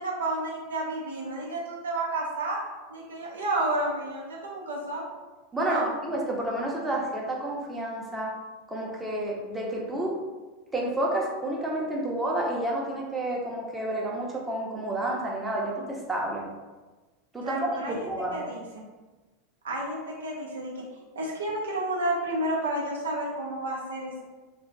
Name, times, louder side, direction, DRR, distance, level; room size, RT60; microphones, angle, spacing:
voice 1, 0.0-2.6 2.9-5.0 5.6-5.9 17.4-18.6 19.6-20.9 21.2-24.2, right 1 dB, 90° right, -3 dB, 0.7 m, -31 dB
voice 2, 5.5-8.3 8.7-10.2 10.7-16.4 17.3-18.4, right 1 dB, 15° right, -2 dB, 0.7 m, -30 dB
2.4 x 2.2 x 3.8 m, 1.2 s
hypercardioid pair, 100°, 0 cm